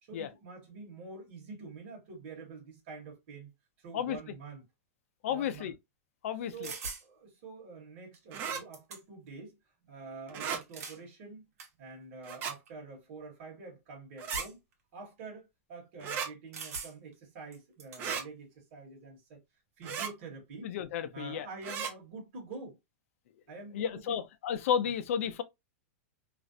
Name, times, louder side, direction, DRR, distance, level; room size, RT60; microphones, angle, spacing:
voice 1, 0.0-3.5 3.8-4.7 5.3-5.7 6.5-9.6 9.8-11.4 11.8-14.6 14.9-19.4 19.8-20.7 21.1-22.8 23.5-24.2 24.8-24.9, right 4 dB, 45° right, 1.1 m, -47 dB
voice 2, 5.2-5.7 6.2-6.7 20.6-21.5 23.7-25.4, left 8 dB, 65° left, 0.4 m, -32 dB
sound 1, 6.6-7.1 8.1-8.2 8.5-9.3 10.5-11.0 11.6-11.7 12.5-12.7 14.3-14.7 16.5-17.1 17.5-18.0, right 4 dB, 80° right, 1.0 m, -41 dB
sound 2, 8.3-8.6 10.3-10.6 12.2-12.5 14.2-14.5 16.0-16.3 18.0-18.2 19.8-20.1 21.6-21.9, right 7 dB, 25° right, 0.4 m, -35 dB
2.5 x 2.0 x 2.5 m
supercardioid pair, 170°, 8 cm